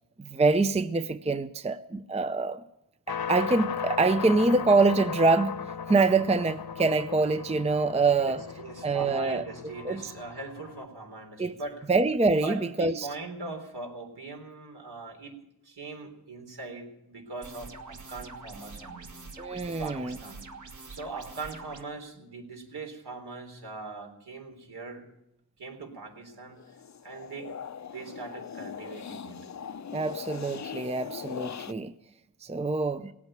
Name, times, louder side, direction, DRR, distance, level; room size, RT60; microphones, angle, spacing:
voice 1, 0.2-2.6 3.1-5.6 5.9-8.4 8.8-9.4 9.8-10.1 11.4-11.6 11.9-13.1 19.4-20.2 29.9-31.9 32.4-33.1, right 3 dB, 15° right, 12 dB, 0.6 m, -25 dB
sound 1, 3.1-10.8, left 7 dB, 65° left, 0.9 m, -37 dB
voice 2, 8.1-11.9 12.4-15.4 15.6-19.1 19.7-20.5 20.9-25.0 25.6-26.6 27.0-27.5 27.9-29.4, right 3 dB, 70° right, 3 dB, 3.8 m, -41 dB
sound 2, 17.4-21.8, right 3 dB, 50° right, 1.6 m, -45 dB
sound 3, 26.5-31.7, left 7 dB, 45° left, 0.6 m, -40 dB
18.5 x 8.6 x 9.1 m, 0.85 s
wide cardioid pair, 80°, 40 cm